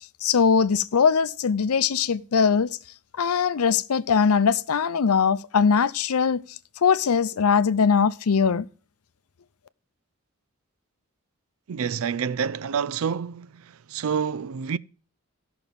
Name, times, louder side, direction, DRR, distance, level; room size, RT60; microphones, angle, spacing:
voice 1, 0.2-2.8 3.2-8.7, left 6 dB, 85° left, 0.6 m, -21 dB
voice 2, 11.7-13.5 13.9-14.8, right 7 dB, 70° right, 0.4 m, -27 dB
14.0 x 6.1 x 5.3 m
head